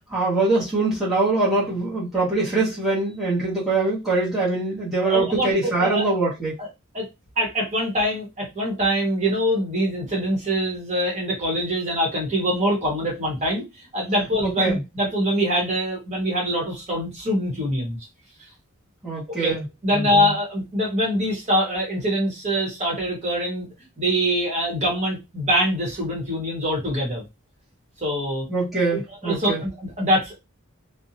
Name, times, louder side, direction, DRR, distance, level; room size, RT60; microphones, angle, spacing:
voice 1, 0.0-6.6 14.4-14.8 19.0-19.7 19.9-20.3 28.5-29.6, right 3 dB, ahead, -9 dB, 1.0 m, -23 dB
voice 2, 5.0-6.0 6.6-6.7 6.9-7.1 7.4-18.0 19.4-19.5 19.8-23.7 24.0-27.2 28.0-28.4 28.9-30.3, equal, 30° right, -2 dB, 1.0 m, -24 dB
2.5 x 2.1 x 2.8 m, 0.23 s
head